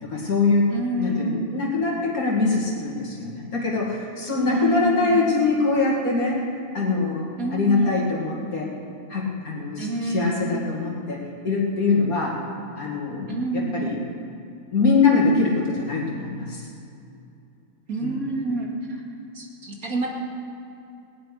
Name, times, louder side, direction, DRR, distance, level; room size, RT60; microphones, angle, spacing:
voice 1, 0.0-6.5 6.7-8.7 9.1-12.4 12.8-14.0 14.7-16.7 18.0-18.2, left 3 dB, 75° left, -4 dB, 2.9 m, -23 dB
voice 2, 0.7-1.5 4.4-5.2 7.4-8.0 9.8-10.4 13.3-13.9 17.9-18.7 19.3-20.1, right 2 dB, 80° right, -1 dB, 2.8 m, -27 dB
18.0 x 7.8 x 10.0 m, 2.6 s
omnidirectional pair, 1.5 m